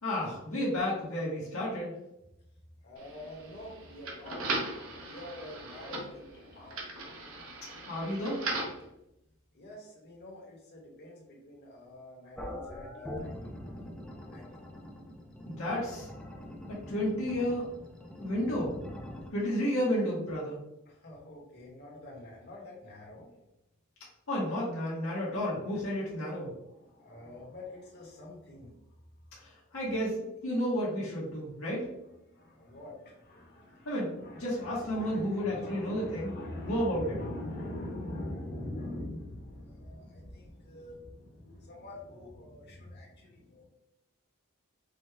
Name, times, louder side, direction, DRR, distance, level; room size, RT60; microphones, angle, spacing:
voice 1, 0.0-1.9 7.9-8.4 15.5-16.1 16.9-17.6 18.2-18.7 19.3-20.6 24.3-26.5 29.4-30.2 30.4-31.8 33.8-36.3 36.6-37.0, equal, 75° left, -6 dB, 1.1 m, -31 dB
voice 2, 2.8-4.4 4.9-6.9 9.5-14.0 14.3-14.8 20.8-23.3 26.6-28.7 29.7-29.8 31.6-43.7, left 1 dB, 50° left, -2 dB, 1.4 m, -44 dB
sound 1, 3.0-8.8, right 2 dB, 75° right, 1.0 m, -38 dB
sound 2, 12.4-19.3, left 1 dB, 5° left, 0.5 m, -43 dB
5.2 x 2.2 x 3.4 m, 0.87 s
head